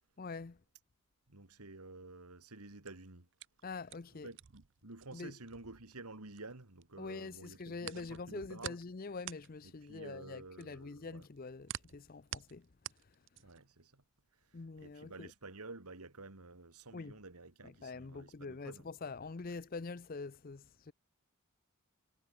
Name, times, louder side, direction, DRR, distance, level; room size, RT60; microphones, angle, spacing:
voice 1, 0.2-0.6 3.6-4.4 5.1-5.3 7.0-13.2 14.5-15.3 16.9-17.2 17.6-20.9, left 4 dB, 40° left, 0.5 m, -45 dB
voice 2, 1.3-3.3 4.2-8.8 9.8-11.3 13.4-14.0 14.3-18.8, right 3 dB, 90° right, 2.4 m, -51 dB
sound 1, 2.7-6.8 7.1-13.7, right 10 dB, 55° right, 0.6 m, -48 dB
head